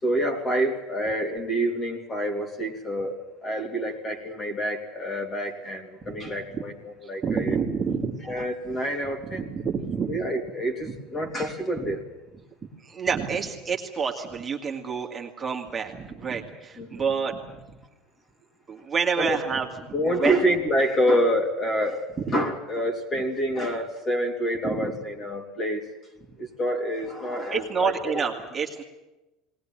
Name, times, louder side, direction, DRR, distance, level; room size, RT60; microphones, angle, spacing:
voice 1, 0.0-7.6 8.3-9.5 10.1-12.0 16.8-17.0 19.2-19.4 19.9-25.9 26.4-28.2, equal, 25° left, 4 dB, 3.1 m, -27 dB
voice 2, 7.0-8.4 9.2-10.2 11.9-12.0 12.6-17.8 18.7-19.7 20.0-20.4 22.3-22.4 24.6-25.0 27.5-28.8, right 6 dB, 20° right, 1 dB, 2.3 m, -29 dB
19.5 x 19.5 x 9.1 m, 1.0 s
supercardioid pair, 130°, 0 cm